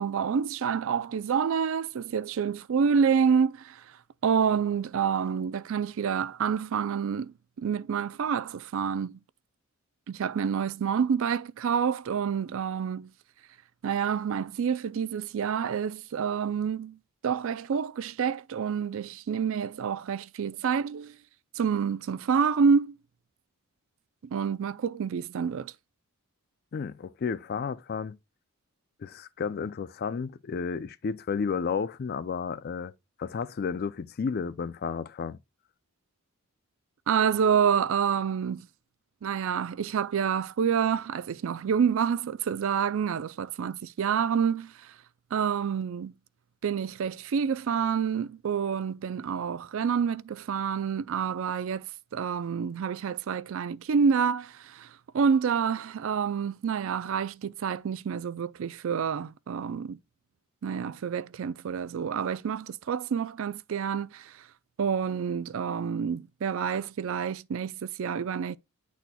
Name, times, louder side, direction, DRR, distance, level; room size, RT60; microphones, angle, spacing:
voice 1, 0.0-3.8 4.2-9.2 10.1-13.1 13.8-17.0 17.2-21.2 21.5-22.9 24.3-25.7 37.1-38.6 39.2-44.9 45.3-46.1 46.6-51.9 52.1-60.0 60.6-64.4 64.8-68.6, right 6 dB, 60° right, 0.4 m, -28 dB
voice 2, 26.7-28.2 29.0-32.9 33.2-35.4, left 5 dB, 45° left, 0.3 m, -32 dB
10.5 x 4.2 x 2.2 m
head